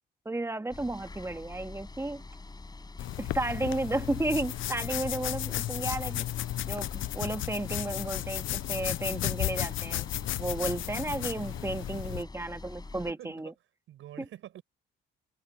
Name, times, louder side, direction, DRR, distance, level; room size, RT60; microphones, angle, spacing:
voice 1, 0.2-2.2 3.2-6.2 6.7-10.1 10.4-13.5, right 2 dB, 15° right, 2.7 m, -33 dB
sound 1, 0.7-13.1, left 3 dB, 20° left, 7.6 m, -46 dB
sound 2, 3.0-12.2, left 14 dB, 80° left, 0.8 m, -34 dB
voice 2, 12.8-13.6 13.9-14.6, right 12 dB, 80° right, 6.8 m, -47 dB
cardioid pair, 90°, 20 cm